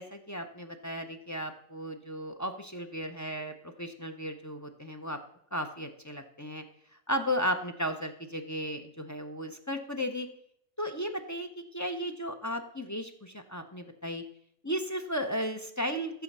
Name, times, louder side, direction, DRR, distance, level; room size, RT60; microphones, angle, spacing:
voice 1, 0.0-5.2 5.5-6.6 7.1-10.3 10.8-14.2 14.6-16.2, equal, 20° left, 4 dB, 0.5 m, -35 dB
14.0 x 7.0 x 5.4 m, 0.70 s
omnidirectional pair, 1.5 m